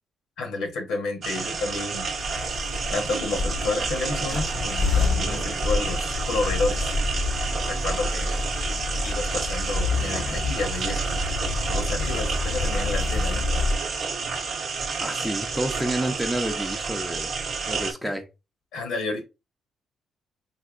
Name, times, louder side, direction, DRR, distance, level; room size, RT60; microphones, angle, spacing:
voice 1, 0.4-2.1 2.9-7.0 7.7-8.5 9.0-11.2 11.7-13.6 18.0-18.1 18.7-19.2, left 3 dB, 85° left, 1.0 m, -30 dB
sound 1, 1.2-17.9, right 4 dB, 55° right, 0.6 m, -30 dB
sound 2, 1.8-17.8, right 4 dB, 90° right, 0.9 m, -49 dB
sound 3, 2.2-13.7, left 3 dB, 45° left, 0.4 m, -28 dB
voice 2, 15.0-17.3 17.7-18.2, right 1 dB, 5° right, 0.6 m, -29 dB
3.5 x 2.8 x 2.4 m
cardioid pair, 90°, 0 cm